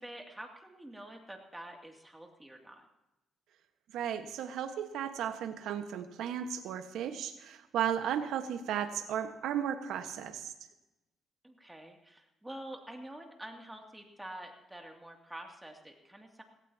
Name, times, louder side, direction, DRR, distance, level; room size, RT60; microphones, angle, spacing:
voice 1, 0.0-2.9 11.4-16.4, right 1 dB, 10° right, 2 dB, 2.6 m, -47 dB
voice 2, 3.9-10.5, right 9 dB, 85° right, 8 dB, 1.4 m, -35 dB
18.5 x 17.5 x 2.9 m, 0.95 s
cardioid pair, 90°, 0 cm